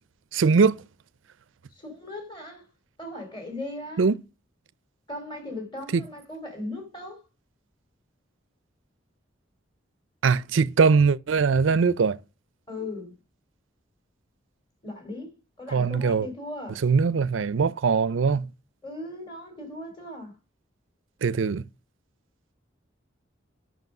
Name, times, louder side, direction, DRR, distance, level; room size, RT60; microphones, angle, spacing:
voice 1, 0.3-0.8 4.0-4.2 5.9-6.0 10.2-12.2 15.7-16.3 16.8-18.5 21.2-21.6, right 5 dB, 80° right, 0.5 m, -21 dB
voice 2, 1.8-2.7 3.0-4.1 5.1-7.2 12.7-13.2 14.8-15.3 15.6-16.8 18.8-20.4, left 1 dB, 25° left, 2.8 m, -38 dB
9.3 x 6.1 x 5.9 m
head